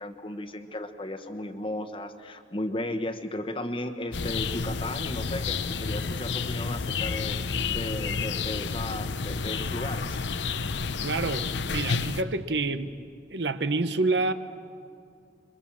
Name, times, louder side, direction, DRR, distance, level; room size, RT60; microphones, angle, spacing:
voice 1, 0.0-7.4 7.7-10.2, left 1 dB, 30° left, 7 dB, 1.2 m, -35 dB
sound 1, 4.1-12.2, left 4 dB, 80° left, 0.8 m, -30 dB
voice 2, 11.0-12.9 13.3-14.3, right 3 dB, 75° right, 11 dB, 1.0 m, -27 dB
26.0 x 23.5 x 7.5 m, 2.3 s
head